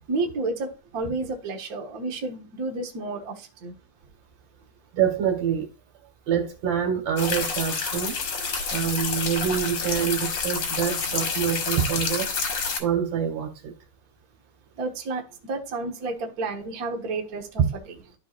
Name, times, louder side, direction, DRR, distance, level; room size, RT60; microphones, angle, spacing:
voice 1, 0.1-3.7 8.4-8.6 14.8-17.6, right 3 dB, 75° right, 0.8 m, -31 dB
voice 2, 4.9-5.6 6.3-8.2 8.7-12.3 12.8-13.7, right 8 dB, 60° right, 2.3 m, -26 dB
sound 1, 7.2-12.8, left 5 dB, 50° left, 1.8 m, -28 dB
12.5 x 4.6 x 2.4 m
omnidirectional pair, 3.7 m